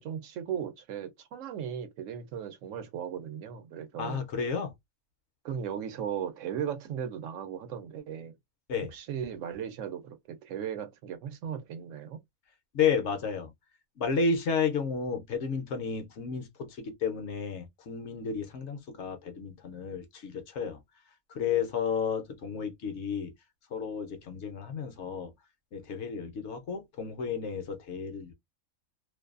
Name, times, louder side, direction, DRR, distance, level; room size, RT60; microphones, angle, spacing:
voice 1, 0.0-4.2 5.4-8.3 8.9-12.2, right 8 dB, 75° right, 0.9 m, -37 dB
voice 2, 4.0-4.7 8.7-8.9 12.7-13.5 14.0-20.8 21.3-23.3 23.7-25.3 25.7-28.3, left 5 dB, 65° left, 0.8 m, -32 dB
2.6 x 2.2 x 2.3 m
omnidirectional pair, 1.4 m